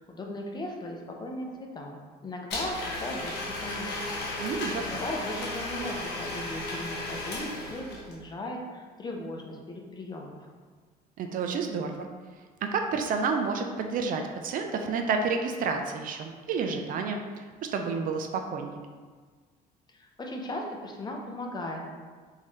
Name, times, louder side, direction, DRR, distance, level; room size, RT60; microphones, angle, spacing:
voice 1, 0.0-4.2 4.9-10.5 19.9-21.8, left 1 dB, 25° left, 0 dB, 0.6 m, -37 dB
Domestic sounds home sounds, 2.5-8.2, left 2 dB, 80° left, 0.8 m, -34 dB
voice 2, 4.4-4.9 11.2-12.1 12.6-18.8, right 5 dB, 55° right, 4 dB, 0.4 m, -30 dB
3.8 x 2.7 x 3.1 m, 1.5 s
cardioid pair, 110°, 17 cm